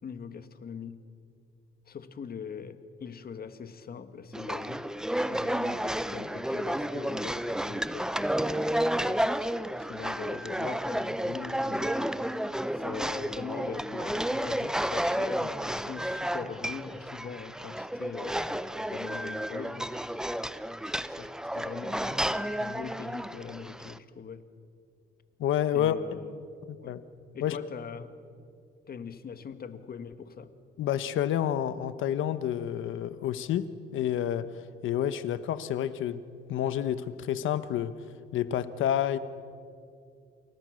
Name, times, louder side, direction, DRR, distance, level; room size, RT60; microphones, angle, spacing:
voice 1, 0.0-1.0 1.9-8.4 9.0-12.2 12.7-20.1 21.1-21.3 21.5-24.4 25.7-26.4 26.8-27.0 27.3-28.2 28.9-30.5, left 6 dB, 50° left, 9 dB, 1.9 m, -42 dB
sound 1, 4.3-24.0, equal, 5° right, 0.8 m, -31 dB
voice 2, 25.4-26.0 26.8-27.0 27.4-27.6 30.8-34.5 34.8-36.2 36.5-37.9 38.3-39.2, left 10 dB, 80° left, 12 dB, 1.3 m, -29 dB
28.5 x 28.5 x 6.6 m, 2.4 s
cardioid pair, 90°, 20 cm